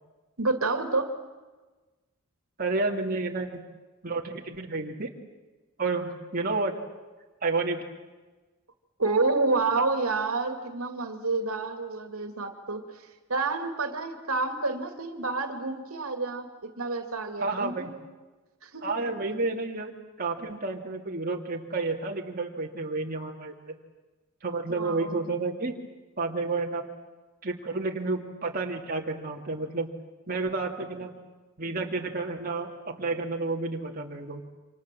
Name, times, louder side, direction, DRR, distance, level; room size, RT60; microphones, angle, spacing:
voice 1, 0.4-1.1 9.0-17.9 18.6-18.9 24.7-25.3, right 3 dB, 80° right, 7 dB, 2.5 m, -29 dB
voice 2, 2.6-3.6 4.0-5.1 5.8-6.8 7.4-7.8 17.4-17.9 18.8-19.9 20.2-23.8 24.4-25.8 26.2-26.9 27.4-29.9 30.3-31.1 31.6-34.4, right 3 dB, 45° right, 0 dB, 2.5 m, -30 dB
28.5 x 26.5 x 7.7 m, 1.2 s
head